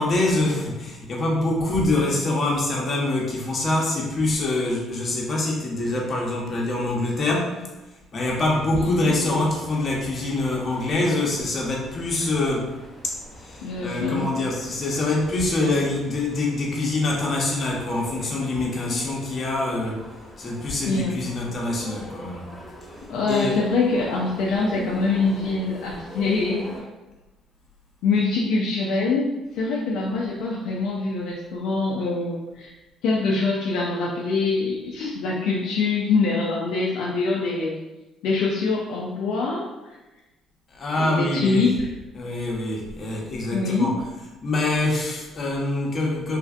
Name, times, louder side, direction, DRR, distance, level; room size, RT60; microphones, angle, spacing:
voice 1, 0.0-7.6 8.1-12.7 13.4-20.0 20.4-22.5 23.3-23.6 40.7-41.7 42.1-43.9 44.4-46.4, left 2 dB, 45° left, -2 dB, 0.9 m, -25 dB
sound 1, 8.2-26.8, equal, ahead, 1.1 m, -43 dB
voice 2, 8.7-9.5 13.6-14.3 20.9-21.2 23.1-26.7 28.0-29.3 29.5-32.7 33.0-37.8 38.2-40.0 41.0-41.9 43.5-43.9, left 3 dB, 75° left, -3 dB, 0.4 m, -24 dB
3.2 x 2.4 x 2.5 m, 1.1 s
supercardioid pair, 70°, 0 cm